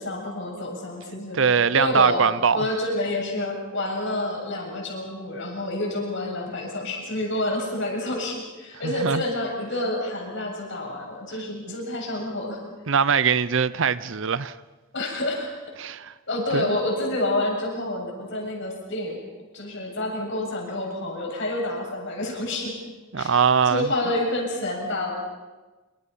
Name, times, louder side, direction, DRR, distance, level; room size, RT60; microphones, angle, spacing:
voice 1, 0.0-1.4 1.7-2.2 2.5-12.6 14.9-15.5 16.3-19.2 19.5-22.8 23.2-23.4 23.7-25.1, left 1 dB, 60° left, 7.4 m, -28 dB
voice 2, 1.3-2.7 8.8-9.2 11.7-11.8 12.9-14.6 15.8-16.1 16.5-16.8 23.1-23.9, right 6 dB, 65° right, 0.7 m, -22 dB
27.0 x 25.0 x 5.7 m
head